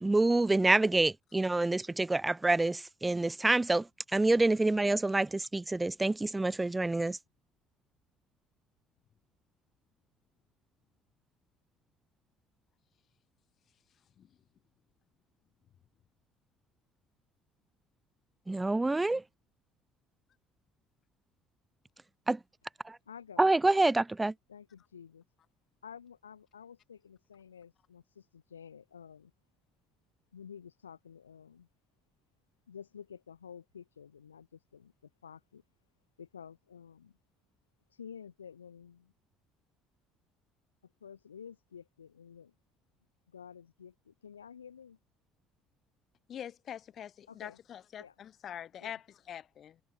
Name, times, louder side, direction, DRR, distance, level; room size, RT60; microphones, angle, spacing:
voice 1, 0.0-3.8 4.1-7.2 18.5-19.2 22.3-22.4 22.8-23.0 23.4-24.3, right 2 dB, 15° right, 0.8 m, -27 dB
voice 2, 23.1-23.5 24.5-25.2 25.8-29.3 30.3-31.7 32.7-35.6 36.2-37.1 37.9-39.1 40.8-42.5 43.3-45.0 47.3-47.6 48.0-48.1 48.8-49.0, left 7 dB, 85° left, 6.2 m, -51 dB
voice 3, 46.3-49.8, left 9 dB, 50° left, 3.1 m, -44 dB
figure-of-eight pair, 55°, 0 cm